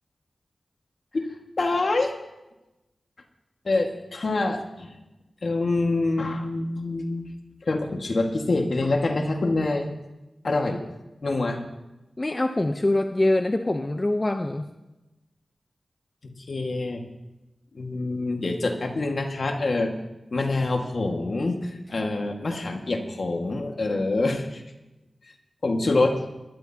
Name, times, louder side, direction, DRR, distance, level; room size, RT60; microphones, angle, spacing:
voice 1, 1.6-2.1 3.6-4.9 5.4-7.2 7.6-9.9 10.4-10.8 11.2-11.6 16.5-17.0 17.7-19.9 20.3-24.6 25.6-26.2, left 2 dB, 65° left, 3 dB, 1.8 m, -25 dB
voice 2, 12.2-14.7, left 1 dB, 30° left, 7 dB, 0.7 m, -24 dB
21.5 x 12.0 x 2.9 m, 1.0 s
cardioid pair, 50°, 0 cm